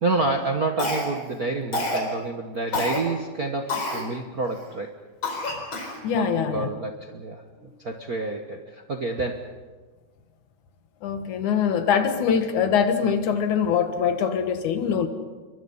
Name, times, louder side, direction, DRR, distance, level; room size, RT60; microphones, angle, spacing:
voice 1, 0.0-4.9 6.1-7.4 7.8-9.4, right 3 dB, 50° right, 4 dB, 1.1 m, -28 dB
Cough, 0.8-1.3 1.7-2.1 2.7-3.0 3.7-4.0 4.6-4.7 5.2-6.0, left 1 dB, 40° left, 5.0 m, -27 dB
voice 2, 6.0-6.7 11.0-15.1, left 7 dB, 75° left, 8 dB, 2.9 m, -23 dB
29.0 x 23.5 x 5.6 m, 1.4 s
omnidirectional pair, 3.5 m